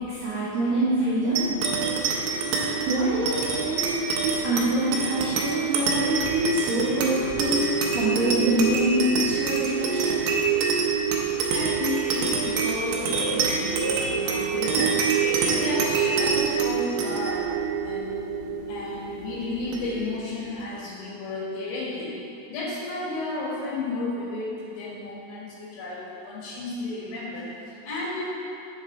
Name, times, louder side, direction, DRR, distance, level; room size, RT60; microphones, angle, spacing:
voice 1, 0.0-1.5 2.4-10.3, right 1 dB, 60° right, -13 dB, 1.9 m, -26 dB
sound 1, 1.4-20.2, right 5 dB, 80° right, 2.1 m, -26 dB
voice 2, 11.5-15.1 15.4-17.5 17.8-18.3 18.7-22.2 22.5-28.2, left 2 dB, 75° left, -5 dB, 3.7 m, -33 dB
8.4 x 5.9 x 3.8 m, 2.7 s
omnidirectional pair, 5.2 m